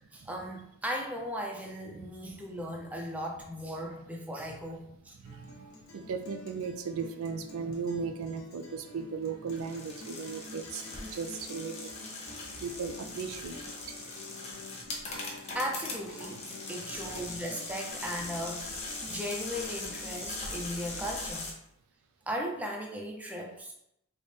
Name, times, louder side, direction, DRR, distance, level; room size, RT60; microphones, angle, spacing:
voice 1, 0.1-5.2 15.0-15.2 15.5-18.8 19.1-21.5 22.3-23.7, equal, 5° right, 0.4 m, -37 dB
Guitar, 5.2-21.3, left 1 dB, 70° left, 0.7 m, -50 dB
voice 2, 5.2-11.9 12.6-13.6 13.9-14.0, right 5 dB, 70° right, 0.4 m, -37 dB
sound 1, 9.5-21.5, left 2 dB, 30° left, 0.6 m, -40 dB
4.1 x 2.0 x 3.2 m
head